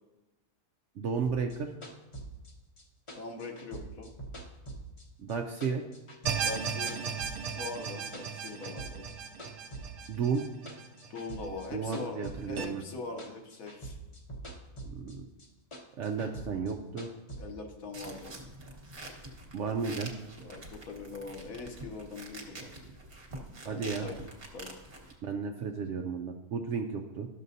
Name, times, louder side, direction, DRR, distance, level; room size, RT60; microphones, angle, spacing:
voice 1, 1.0-1.7 5.2-5.8 10.1-10.4 11.7-12.8 14.9-15.2 16.0-17.1 19.5-20.1 23.6-24.1 25.2-27.3, right 5 dB, 65° right, 3 dB, 0.8 m, -33 dB
sound 1, 1.2-5.4 5.6-7.6 7.8-9.1 9.4-12.9 13.2-15.1 15.4-17.4, right 2 dB, 25° left, 0.7 m, -44 dB
voice 2, 3.1-4.1 6.4-7.0 7.6-9.0 11.1-14.0 17.4-18.3 20.4-22.7 23.6-24.2 24.5-24.8, left 3 dB, 70° left, 3 dB, 1.3 m, -41 dB
sound 2, 6.3-11.5 11.8-11.9 12.6-12.7, right 6 dB, 90° right, 1.1 m, -36 dB
sound 3, 17.9-25.1, right 2 dB, 40° right, 1.3 m, -46 dB
12.5 x 6.5 x 2.7 m, 1.0 s
omnidirectional pair, 1.6 m